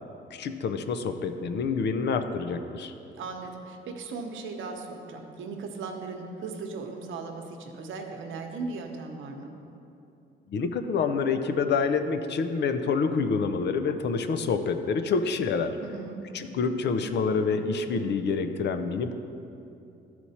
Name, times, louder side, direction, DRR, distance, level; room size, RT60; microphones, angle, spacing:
voice 1, 0.3-2.9 10.5-15.8 16.3-19.1, left 5 dB, 60° left, 9 dB, 0.6 m, -27 dB
voice 2, 3.2-9.5 15.8-16.2, right 4 dB, 80° right, 3 dB, 0.9 m, -37 dB
12.5 x 4.3 x 4.3 m, 2.7 s
cardioid pair, 90°, 20 cm